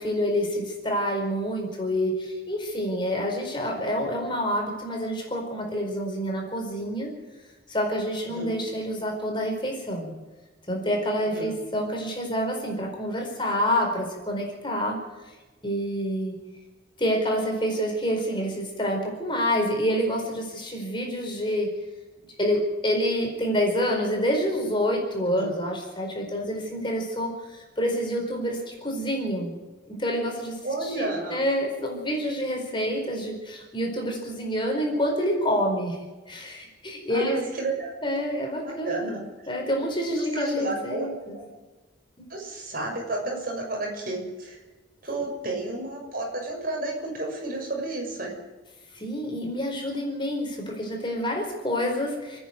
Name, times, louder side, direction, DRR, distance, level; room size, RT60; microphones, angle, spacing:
voice 1, 0.0-7.1 7.7-10.1 10.7-15.0 15.2-15.3 15.6-16.4 17.0-21.7 22.4-29.5 29.9-36.0 36.3-37.4 38.0-41.4 48.9-52.4, equal, 25° left, 1 dB, 4.7 m, -27 dB
voice 2, 11.2-11.5 25.3-25.5 30.6-31.4 37.1-37.9 38.6-39.1 40.3-41.1 41.3-41.4 42.3-44.6 45.0-48.4, right 2 dB, 50° right, 0 dB, 6.6 m, -31 dB
29.5 x 10.0 x 9.4 m, 1.2 s
head